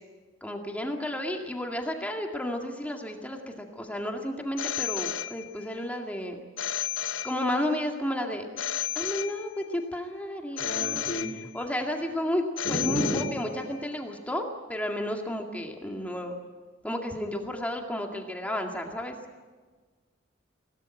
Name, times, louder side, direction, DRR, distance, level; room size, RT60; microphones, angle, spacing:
voice 1, 0.4-6.4 7.2-8.5 8.9-11.1 11.5-16.3 16.8-19.1, left 1 dB, 10° left, 2 dB, 2.1 m, -32 dB
Telephone, 4.6-5.8 6.6-7.8 8.6-9.8 10.6-11.8 12.6-13.8, left 11 dB, 85° left, 0.8 m, -33 dB
voice 2, 10.6-11.4 12.6-13.3, left 1 dB, 40° left, -2 dB, 2.8 m, -31 dB
25.0 x 18.5 x 9.0 m, 1.4 s
head